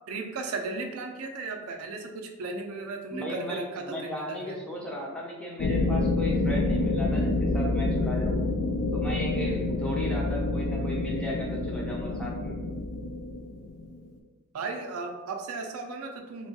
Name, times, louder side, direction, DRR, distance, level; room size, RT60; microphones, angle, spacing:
voice 1, 0.1-4.6 10.5-10.8 14.5-16.5, right 3 dB, 80° right, 4 dB, 0.4 m, -36 dB
voice 2, 3.1-8.4 8.9-12.6, equal, 5° left, -3 dB, 0.4 m, -36 dB
sound 1, 5.6-14.0, left 2 dB, 85° left, 0.4 m, -27 dB
2.9 x 2.2 x 2.7 m, 1.2 s
head